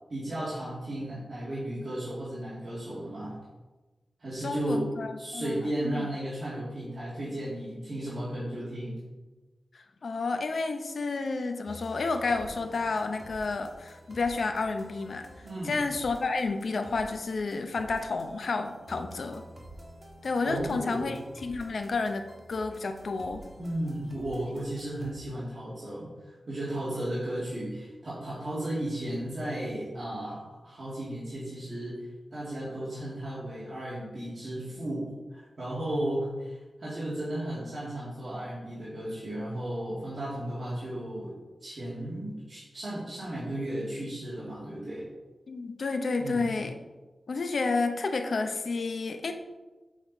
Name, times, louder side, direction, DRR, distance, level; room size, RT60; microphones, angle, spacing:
voice 1, 0.1-3.4 4.2-4.9 5.2-9.0 15.4-15.8 20.4-21.1 23.6-45.0 46.2-46.5, right 1 dB, 55° right, -10 dB, 2.1 m, -34 dB
voice 2, 4.4-6.1 10.0-15.3 15.6-19.4 20.2-23.4 45.5-46.7 47.3-49.3, left 3 dB, 70° left, 6 dB, 0.6 m, -31 dB
sound 1, 11.7-25.1, equal, 35° right, 1.3 m, -49 dB
7.1 x 4.1 x 4.6 m, 1.2 s
wide cardioid pair, 105°, 0 cm